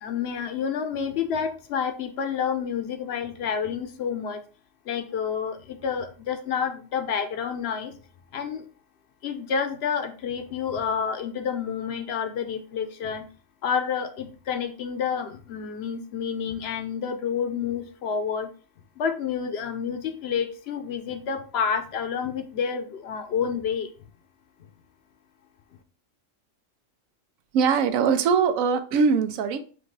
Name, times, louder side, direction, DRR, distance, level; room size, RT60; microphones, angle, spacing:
voice 1, 0.0-4.4 4.9-7.9 8.3-8.6 9.2-13.2 13.6-18.5 19.0-23.9, left 7 dB, 60° left, 0.8 m, -29 dB
voice 2, 27.5-29.6, right 6 dB, 90° right, 1.0 m, -21 dB
4.6 x 2.3 x 3.8 m
omnidirectional pair, 1.4 m